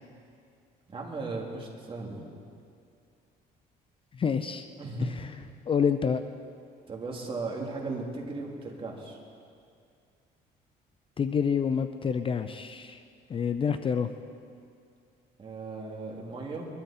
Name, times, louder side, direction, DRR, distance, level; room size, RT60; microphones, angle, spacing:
voice 1, 0.9-2.2 4.8-5.2 6.9-9.2 15.4-16.7, right 3 dB, 30° right, -1 dB, 2.9 m, -36 dB
voice 2, 4.2-4.7 5.0-5.3 5.7-6.2 11.2-13.0 13.3-14.1, left 6 dB, 30° left, 10 dB, 0.5 m, -27 dB
21.5 x 13.0 x 4.3 m, 2.3 s
cardioid pair, 110°, 17 cm